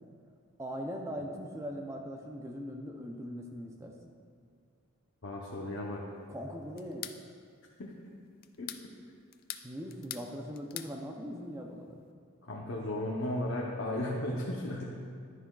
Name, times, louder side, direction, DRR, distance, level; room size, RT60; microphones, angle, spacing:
voice 1, 0.6-3.9 6.3-7.1 9.6-12.0, equal, 15° right, 1 dB, 0.5 m, -40 dB
voice 2, 5.2-6.0 7.8-7.9 8.6-8.7 12.4-14.8, left 1 dB, 60° left, -2 dB, 0.8 m, -35 dB
sound 1, 6.8-7.2 8.4-8.9 9.3-10.3 10.5-10.9, left 12 dB, 40° left, 0.3 m, -42 dB
11.0 x 9.8 x 2.3 m, 2.2 s
head